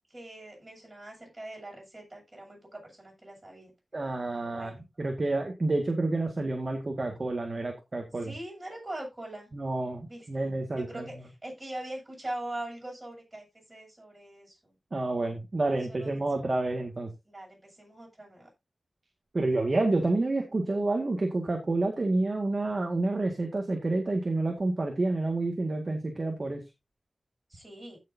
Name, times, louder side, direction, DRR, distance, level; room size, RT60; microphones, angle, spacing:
voice 1, 0.1-3.7 4.3-4.9 8.1-9.5 10.1-14.8 15.7-16.6 17.2-18.5 27.5-28.0, right 1 dB, 20° right, -1 dB, 7.7 m, -42 dB
voice 2, 3.9-4.7 5.0-8.3 9.5-11.0 14.9-17.1 19.3-26.6, right 2 dB, 40° right, 2 dB, 1.9 m, -29 dB
15.5 x 6.7 x 2.8 m, 0.23 s
wide cardioid pair, 115°, 0 cm